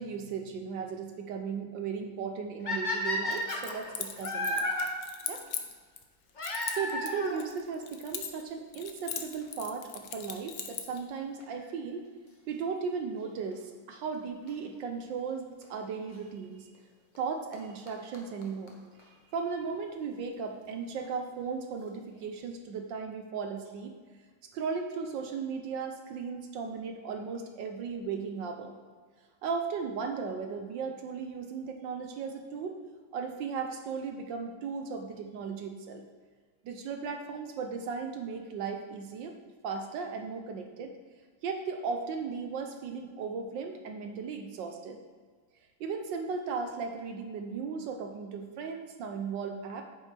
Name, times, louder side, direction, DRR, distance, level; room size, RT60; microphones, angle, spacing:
voice 1, 0.0-4.7 5.3-5.4 6.7-12.0 12.5-16.7 17.2-18.8 19.3-23.9 24.5-28.7 29.4-32.7 33.1-36.0 36.6-39.4 39.6-40.9 41.4-45.0 45.8-49.9, right 5 dB, 70° right, 5 dB, 1.3 m, -36 dB
sound 1, 2.7-4.9 6.4-7.4 8.3-8.4 9.1-9.2 9.4-9.5 11.4-11.7 14.5-14.6 15.6-15.7 17.2-17.3 17.5-17.6 17.9-18.0 18.1-18.2 18.4-18.5 18.7-18.8 19.0-19.1, left 1 dB, 30° left, 0.9 m, -32 dB
Keys jangling, 3.3-6.0 6.4-8.5 8.7-11.0, left 8 dB, 65° left, 0.9 m, -39 dB
8.7 x 7.8 x 3.3 m, 1.5 s
omnidirectional pair, 2.3 m